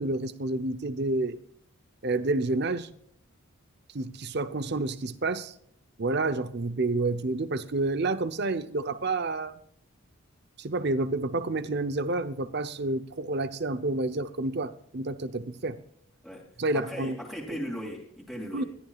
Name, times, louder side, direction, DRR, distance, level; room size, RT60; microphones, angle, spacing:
voice 1, 0.0-1.4 2.0-2.9 3.9-5.5 6.0-9.6 10.6-15.8 16.6-17.1 18.5-18.6, right 2 dB, 50° right, 0.8 m, -29 dB
voice 2, 16.7-18.7, equal, ahead, 2.8 m, -37 dB
20.5 x 14.0 x 2.4 m
head